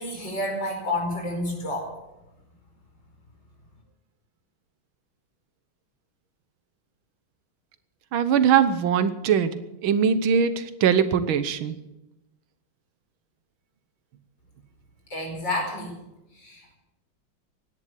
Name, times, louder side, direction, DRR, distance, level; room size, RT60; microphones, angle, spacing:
voice 1, 0.0-1.9 15.1-15.9 16.3-16.8, left 1 dB, 65° left, 1 dB, 5.6 m, -30 dB
voice 2, 8.1-11.7, right 7 dB, 90° right, 13 dB, 1.8 m, -21 dB
16.5 x 10.5 x 8.3 m, 0.95 s
omnidirectional pair, 2.1 m